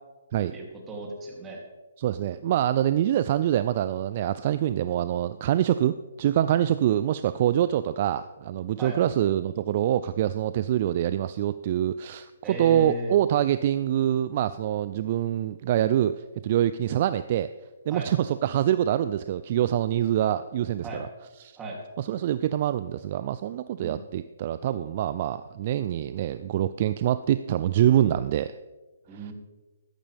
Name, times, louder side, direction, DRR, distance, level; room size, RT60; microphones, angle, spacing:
voice 1, 0.5-1.6 8.8-9.0 12.4-13.1 17.9-18.1 20.8-21.0 21.6-21.8 23.8-24.0 29.1-29.3, right 1 dB, 15° right, -2 dB, 2.9 m, -36 dB
voice 2, 2.0-17.5 17.9-21.1 21.4-21.6 22.0-28.6, right 11 dB, 45° right, 13 dB, 0.4 m, -25 dB
14.0 x 13.0 x 3.5 m, 1.2 s
hypercardioid pair, 145°, 0 cm